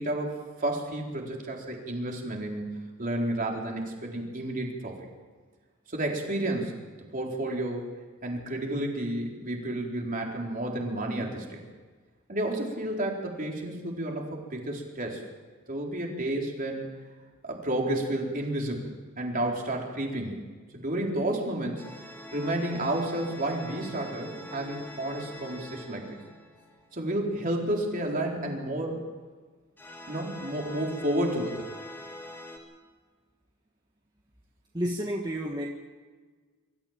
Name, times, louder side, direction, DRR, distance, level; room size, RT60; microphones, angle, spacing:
voice 1, 0.0-5.0 5.9-6.8 7.1-7.9 8.2-11.6 12.3-15.2 15.7-16.9 17.4-20.4 20.7-21.9 22.3-26.2 26.9-29.0 30.1-31.7, right 1 dB, 40° right, 0 dB, 4.2 m, -31 dB
sound 1, 21.8-27.2 29.8-32.6, left 1 dB, 10° left, 3.1 m, -44 dB
voice 2, 34.7-35.7, equal, 20° right, 0 dB, 1.5 m, -30 dB
24.0 x 14.0 x 8.9 m, 1.4 s
head